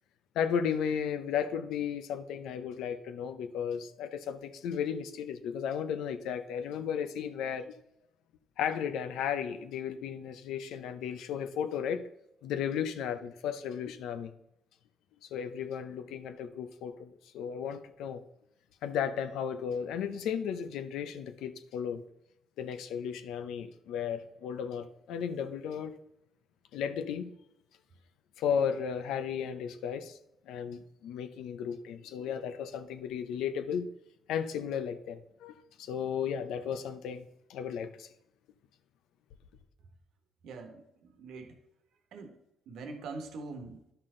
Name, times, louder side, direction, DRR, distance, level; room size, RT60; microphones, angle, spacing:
voice 1, 0.3-7.7 8.6-12.1 12.4-14.3 15.2-18.2 18.8-22.0 22.6-26.0 26.7-27.3 28.4-30.2 30.5-33.9 34.3-37.2 37.5-38.1, left 8 dB, 90° left, 0.7 m, -34 dB
voice 2, 40.4-41.5 42.1-42.3 42.7-43.8, right 3 dB, 80° right, 1.3 m, -43 dB
11.0 x 5.8 x 3.8 m
cardioid pair, 90°, 0 cm